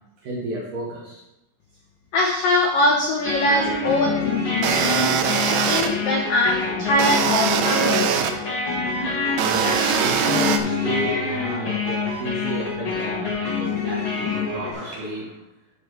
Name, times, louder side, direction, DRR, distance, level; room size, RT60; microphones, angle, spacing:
voice 1, 0.2-1.2 9.4-15.4, equal, 60° right, -4 dB, 2.4 m, -32 dB
voice 2, 2.1-5.2 5.6-8.1, left 1 dB, 80° left, -1 dB, 2.0 m, -22 dB
sound 1, 3.2-14.7, left 4 dB, 60° left, 1.3 m, -26 dB
sound 2, 4.6-5.9 7.0-8.3 9.4-10.6, right 8 dB, 80° right, 2.8 m, -22 dB
12.0 x 4.8 x 4.8 m, 0.87 s
omnidirectional pair, 5.6 m